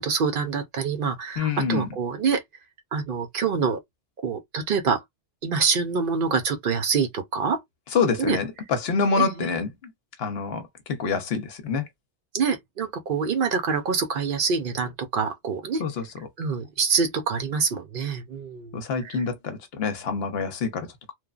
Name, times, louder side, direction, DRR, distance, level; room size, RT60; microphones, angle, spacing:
voice 1, 0.0-2.4 2.9-3.8 4.2-5.0 5.4-7.6 8.2-8.4 9.2-9.5 12.3-15.8 16.4-19.2, right 5 dB, 55° right, 0.8 m, -26 dB
voice 2, 1.4-1.9 7.9-9.9 10.2-10.6 10.9-11.8 15.8-16.0 18.7-21.1, left 5 dB, 65° left, 0.9 m, -26 dB
3.1 x 2.0 x 2.4 m
omnidirectional pair, 1.2 m